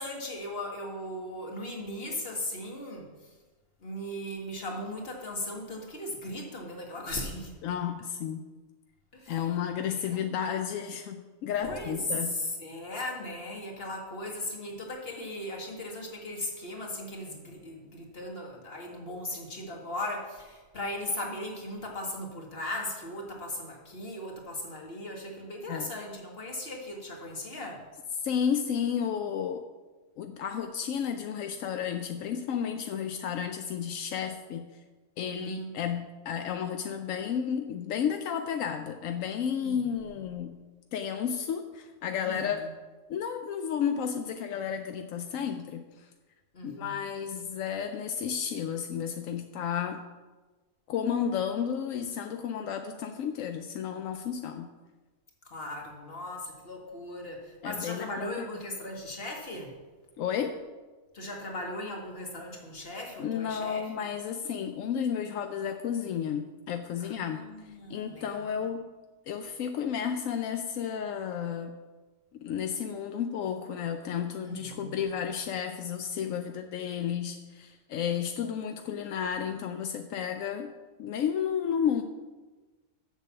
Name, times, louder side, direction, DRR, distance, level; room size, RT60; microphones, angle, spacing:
voice 1, 0.0-3.1 3.8-7.5 9.1-9.4 9.8-10.4 11.6-12.0 12.3-27.8 35.3-35.7 39.6-40.0 42.2-42.7 46.5-46.9 55.5-59.8 61.1-64.1 67.0-68.6 74.4-75.1, left 1 dB, 50° left, 0 dB, 1.9 m, -38 dB
voice 2, 7.6-8.4 9.3-12.4 25.7-25.9 28.2-29.6 30.2-34.8 35.2-40.6 40.9-42.6 43.1-46.1 46.6-50.0 50.9-54.7 57.6-58.3 60.2-60.6 62.8-62.9 63.2-68.9 69.3-71.8 72.3-80.7 81.0-82.0, left 8 dB, 85° left, 6 dB, 1.0 m, -32 dB
7.5 x 7.1 x 6.9 m, 1.3 s
omnidirectional pair, 1.3 m